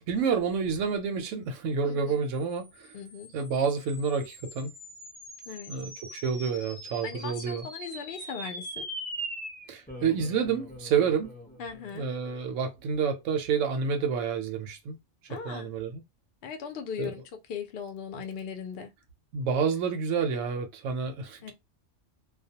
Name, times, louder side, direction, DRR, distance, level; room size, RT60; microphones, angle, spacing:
voice 1, 0.0-2.9 3.3-4.7 5.7-7.7 9.7-11.3 11.9-15.0 15.3-16.0 17.0-17.1 19.3-21.5, right 6 dB, 90° right, 0.9 m, -29 dB
voice 2, 1.8-2.2 2.9-3.3 5.5-5.7 7.0-8.9 11.6-12.1 15.3-15.7 16.4-17.2 17.5-18.9 21.4-21.5, left 6 dB, 60° left, 0.7 m, -38 dB
sound 1, 2.4-13.1, right 1 dB, 10° left, 0.4 m, -43 dB
2.3 x 2.1 x 2.7 m
omnidirectional pair, 1.3 m